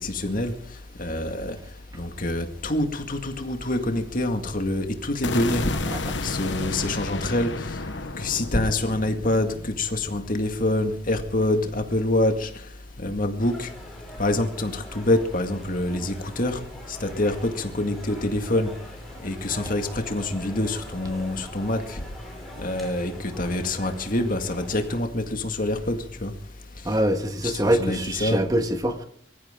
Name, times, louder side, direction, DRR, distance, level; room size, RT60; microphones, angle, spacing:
voice 1, 0.0-0.5 1.0-1.6 2.0-5.7 6.2-7.8 8.2-12.5 13.0-13.7 14.2-16.6 16.9-18.7 19.2-22.0 22.6-26.3 27.4-28.4, left 1 dB, 45° left, 2.1 m, -26 dB
sound 1, 5.2-11.3, left 3 dB, 70° left, 1.1 m, -32 dB
sound 2, 13.4-25.0, equal, ahead, 5.2 m, -43 dB
voice 2, 26.8-29.0, right 1 dB, 20° right, 1.6 m, -24 dB
23.5 x 14.5 x 3.8 m
head